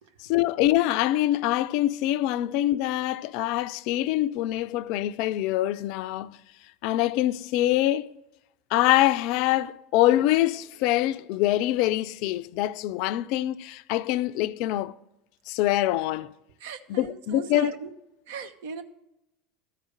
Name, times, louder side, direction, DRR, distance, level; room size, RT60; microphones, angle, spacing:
voice 1, 0.2-6.4 6.8-8.1 8.7-15.0 15.5-16.3 16.9-17.7, left 14 dB, 60° left, 0.4 m, -24 dB
voice 2, 16.6-17.9 18.3-18.8, right 5 dB, 65° right, 0.8 m, -37 dB
13.0 x 4.9 x 7.4 m
hypercardioid pair, 75°, 0 cm